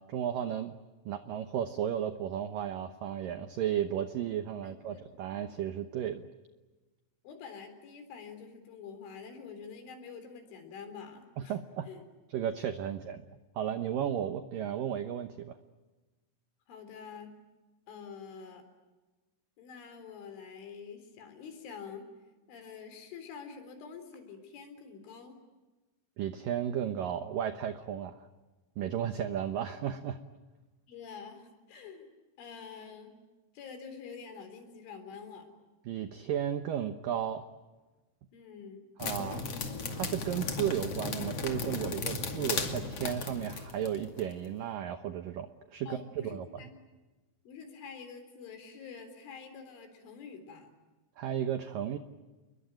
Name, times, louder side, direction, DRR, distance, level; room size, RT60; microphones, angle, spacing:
voice 1, 0.1-0.8 1.1-6.3 11.5-11.9 12.3-13.2 13.6-15.6 26.2-28.3 28.8-30.2 35.9-37.5 39.0-39.5 39.9-46.6 51.2-52.0, right 9 dB, 85° right, 9 dB, 1.9 m, -34 dB
voice 2, 4.6-5.1 7.2-11.6 11.9-12.0 16.7-17.3 17.9-18.6 19.6-22.1 22.5-25.4 30.9-32.1 32.4-33.1 33.5-35.5 38.3-38.8 45.9-46.7 47.5-50.7, left 6 dB, 75° left, 8 dB, 6.1 m, -47 dB
sound 1, 39.0-44.3, left 4 dB, 40° left, 2.5 m, -36 dB
29.5 x 22.5 x 9.0 m, 1.2 s
omnidirectional pair, 5.6 m